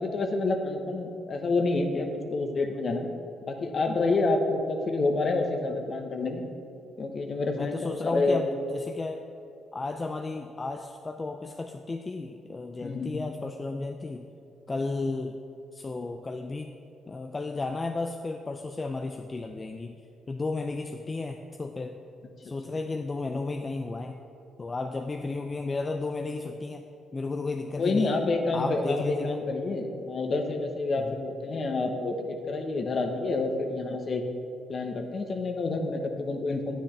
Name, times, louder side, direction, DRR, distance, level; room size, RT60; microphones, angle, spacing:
voice 1, 0.0-3.1 3.4-6.5 7.0-8.4 12.8-13.2 27.8-34.2 34.7-36.8, left 3 dB, 45° left, 4 dB, 1.0 m, -28 dB
voice 2, 7.6-9.2 9.7-14.3 14.7-15.4 15.7-16.7 17.1-20.0 20.3-22.0 22.4-24.2 24.6-26.8 27.1-28.1 28.5-29.4 31.0-31.1, left 3 dB, 25° left, 5 dB, 0.4 m, -33 dB
9.5 x 9.1 x 3.3 m, 2.6 s
cardioid pair, 90°, 0 cm